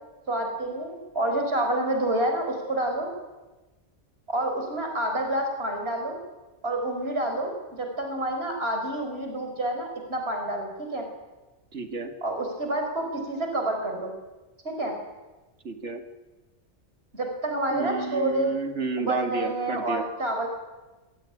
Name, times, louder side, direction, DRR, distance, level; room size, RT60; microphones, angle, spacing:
voice 1, 0.3-3.1 4.3-6.2 6.6-11.1 12.2-14.1 14.6-14.9 17.1-18.5 19.0-20.5, right 1 dB, 60° right, 3 dB, 4.7 m, -28 dB
voice 2, 11.7-12.1 15.6-16.0 17.7-20.1, right 4 dB, 75° right, 6 dB, 2.4 m, -31 dB
24.5 x 17.5 x 9.9 m, 1.2 s
omnidirectional pair, 1.2 m